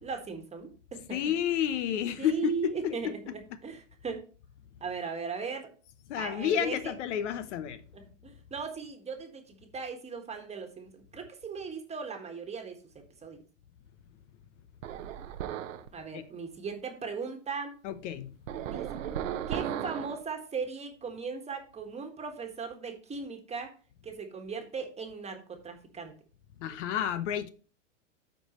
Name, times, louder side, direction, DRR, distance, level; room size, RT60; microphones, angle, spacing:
voice 1, 0.0-1.2 2.1-4.2 4.8-5.7 6.1-6.9 7.9-12.8 13.2-13.4 15.9-17.7 18.7-18.8 19.5-23.7 24.0-26.1, right 5 dB, 15° right, 1.5 m, -38 dB
voice 2, 1.1-3.1 6.1-7.8 16.1-16.2 17.8-18.3 26.6-27.5, left 9 dB, 65° left, 0.9 m, -30 dB
sound 1, 14.8-15.9 18.5-20.2, right 10 dB, 80° right, 0.8 m, -35 dB
12.5 x 4.6 x 3.0 m
hypercardioid pair, 115°, 38 cm